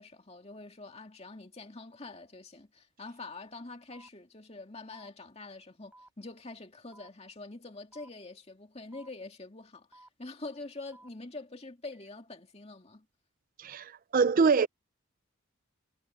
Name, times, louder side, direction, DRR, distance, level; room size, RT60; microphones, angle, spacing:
voice 1, 0.0-13.1, left 2 dB, 30° left, 2.3 m, -45 dB
sound 1, 3.9-4.1 4.9-5.1 5.9-6.1 6.9-7.1 7.9-8.1 8.9-9.1 9.9-10.1 10.9-11.1 11.9-12.1, right 1 dB, 5° right, 7.7 m, -55 dB
voice 2, 13.6-14.7, right 5 dB, 40° right, 0.4 m, -24 dB
head